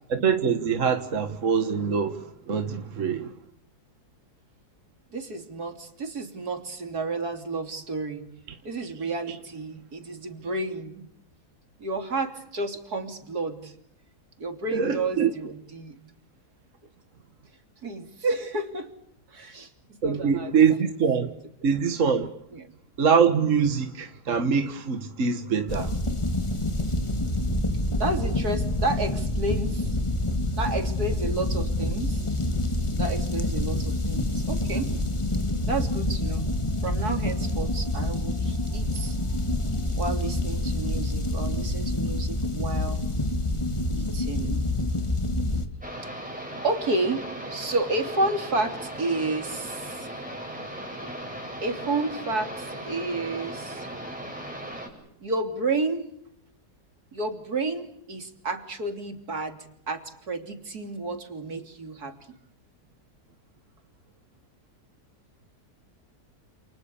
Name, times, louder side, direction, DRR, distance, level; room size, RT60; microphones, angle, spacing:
voice 1, 0.1-3.3 14.7-15.3 20.0-21.3 21.6-22.3 23.0-25.9, right 6 dB, 55° right, 1.7 m, -24 dB
voice 2, 5.1-8.3 8.6-11.1 11.8-13.7 14.4-16.0 17.8-18.9 19.3-20.5 22.5-22.7 28.0-29.9 30.6-32.3 33.0-35.0 35.6-36.5 36.8-39.2 40.0-43.0 44.0-44.6 46.1-46.3 46.6-50.1 51.6-53.9 55.2-56.1 57.1-62.4, right 2 dB, 70° right, 3.7 m, -31 dB
sound 1, 25.7-45.7, left 1 dB, 20° left, 2.0 m, -27 dB
sound 2, 45.8-54.9, right 1 dB, 5° right, 8.0 m, -37 dB
29.0 x 28.5 x 7.1 m
omnidirectional pair, 1.7 m